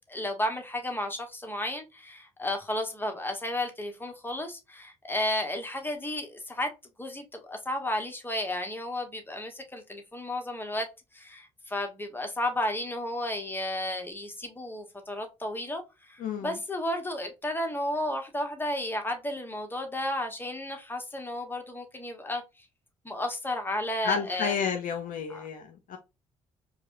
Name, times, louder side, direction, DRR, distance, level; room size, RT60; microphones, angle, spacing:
voice 1, 0.1-6.7 7.0-10.9 11.1-22.7 23.0-24.5 25.3-25.5, left 1 dB, 15° left, 1.1 m, -33 dB
voice 2, 16.2-16.6 24.0-26.0, left 6 dB, 60° left, 0.6 m, -31 dB
4.6 x 2.2 x 2.6 m
hypercardioid pair, 45°, 16 cm